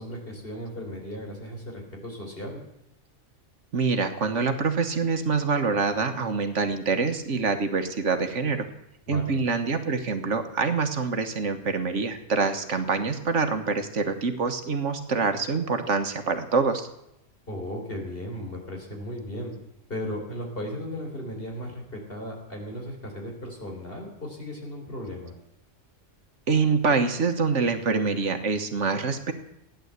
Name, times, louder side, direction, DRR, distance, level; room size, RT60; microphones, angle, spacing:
voice 1, 0.0-2.6 9.1-9.4 17.5-19.5 19.9-25.3, equal, 50° left, 1 dB, 4.3 m, -36 dB
voice 2, 3.7-8.7 9.1-16.9 26.5-29.3, right 4 dB, 75° right, 8 dB, 1.7 m, -25 dB
15.5 x 10.5 x 8.2 m, 0.86 s
omnidirectional pair, 1.3 m